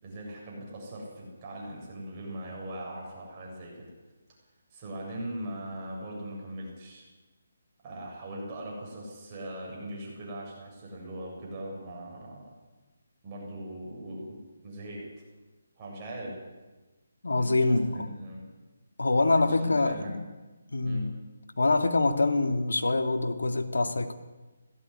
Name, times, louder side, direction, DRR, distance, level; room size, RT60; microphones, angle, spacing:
voice 1, 0.0-3.9 4.7-7.1 7.8-12.5 13.2-15.1 15.8-16.5 17.4-18.5 19.6-20.1 20.8-21.1, right 1 dB, 25° right, -3 dB, 7.5 m, -40 dB
voice 2, 17.2-18.1 19.0-20.2 20.7-21.2 21.6-24.1, left 2 dB, 85° left, 6 dB, 2.2 m, -25 dB
18.0 x 15.5 x 9.8 m, 1.2 s
hypercardioid pair, 160°, 0 cm